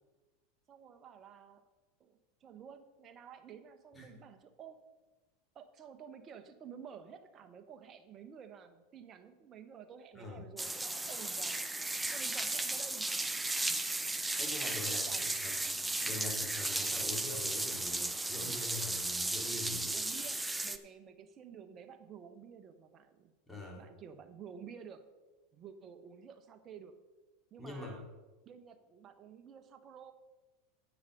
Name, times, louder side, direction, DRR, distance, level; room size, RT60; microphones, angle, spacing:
voice 1, 0.7-1.6 2.0-4.8 5.5-11.6 12.1-13.2 14.9-15.4 19.9-23.3 23.8-25.0 25.5-27.0 27.5-28.1 28.4-30.1, right 7 dB, 35° right, 8 dB, 1.2 m, -52 dB
sound 1, 10.6-20.8, right 2 dB, 10° right, 0.7 m, -35 dB
voice 2, 14.4-15.0 15.4-15.7 16.0-19.9 23.5-23.9 27.6-28.0, left 2 dB, 10° left, -1 dB, 3.4 m, -44 dB
9.5 x 8.3 x 5.4 m, 1.2 s
hypercardioid pair, 90°, 0 cm